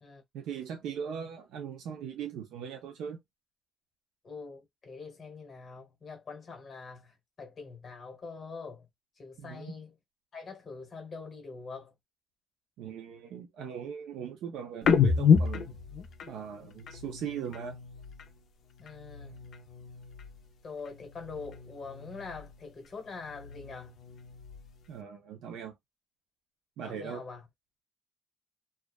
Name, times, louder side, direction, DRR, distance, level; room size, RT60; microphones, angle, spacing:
voice 1, 0.3-3.2 9.4-9.7 12.8-15.7 16.3-17.8 24.9-25.7 26.8-27.2, right 8 dB, 85° right, 0.5 m, -39 dB
voice 2, 4.2-8.9 9.2-9.9 10.3-11.9 18.8-19.4 20.6-24.0 26.8-27.4, left 4 dB, 25° left, 1.1 m, -44 dB
sound 1, 14.8-18.4 18.7-20.5 20.8-22.7 23.0-24.9, left 6 dB, 50° left, 0.5 m, -30 dB
2.4 x 2.2 x 2.3 m
cardioid pair, 170°, 0 cm